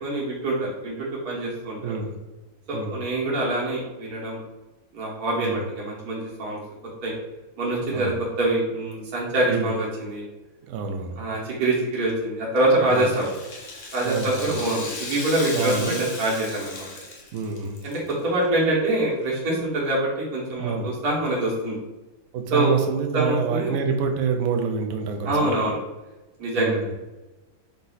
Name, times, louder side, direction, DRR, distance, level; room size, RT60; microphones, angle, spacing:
voice 1, 0.0-2.0 2.7-4.4 4.9-6.6 7.0-7.1 7.6-8.1 8.4-10.3 11.2-13.3 13.9-16.9 17.8-21.8 22.5-22.8 23.1-23.7 25.3-25.8 26.4-26.9, right 1 dB, 55° right, -5 dB, 1.7 m, -25 dB
voice 2, 1.8-2.2 2.7-3.0 5.4-5.6 7.9-8.1 9.5-9.7 10.7-11.2 12.9-13.1 14.0-14.5 15.5-16.0 17.3-17.8 20.5-20.9 22.3-25.6 26.6-26.9, right 5 dB, 85° right, 3 dB, 0.7 m, -27 dB
Rattle (instrument), 12.9-18.1 18.4-18.5 19.4-19.5, left 3 dB, 90° left, 0.5 m, -36 dB
4.0 x 2.7 x 3.9 m, 1.1 s
omnidirectional pair, 2.1 m